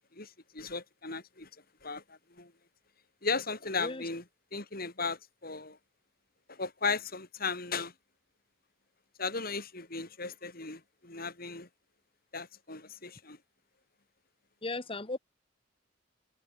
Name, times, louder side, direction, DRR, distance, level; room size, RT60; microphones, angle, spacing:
voice 1, 0.1-1.5 1.8-2.5 3.2-4.2 4.5-5.8 6.5-7.9 9.2-11.7 12.3-13.4, left 4 dB, 45° left, 5.4 m, -36 dB
voice 2, 14.6-15.2, left 2 dB, 25° left, 1.4 m, -36 dB
head